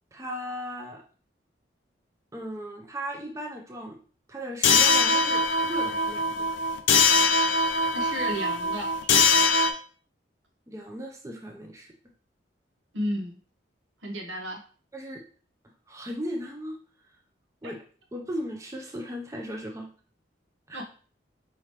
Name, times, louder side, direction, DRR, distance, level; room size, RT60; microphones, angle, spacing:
voice 1, 0.1-1.0 2.3-4.0 4.3-6.5 10.7-11.9 14.9-15.2 15.9-16.8 17.6-17.8 18.1-19.9 20.7-20.8, equal, 15° right, 1 dB, 0.5 m, -36 dB
sound 1, 4.6-9.7, left 3 dB, 80° left, 0.5 m, -22 dB
voice 2, 7.9-8.9 12.9-13.4 14.0-14.6 17.6-17.7 20.7-20.8, equal, 90° right, 1 dB, 1.1 m, -32 dB
4.9 x 2.9 x 3.1 m, 0.41 s
head